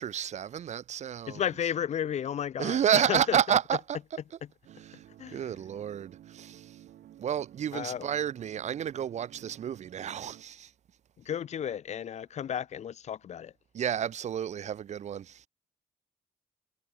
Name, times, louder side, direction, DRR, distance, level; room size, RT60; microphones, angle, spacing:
voice 1, 0.0-1.4 2.6-4.0 4.9-6.8 7.2-10.7 13.7-15.5, right 9 dB, 50° right, 0.5 m, -30 dB
voice 2, 1.3-2.8 3.1-3.4 5.2-5.5 7.7-8.1 11.2-13.5, left 9 dB, 50° left, 0.5 m, -33 dB
sound 1, 4.6-10.4, right 12 dB, 80° right, 1.0 m, -53 dB
cardioid pair, 135°, 15 cm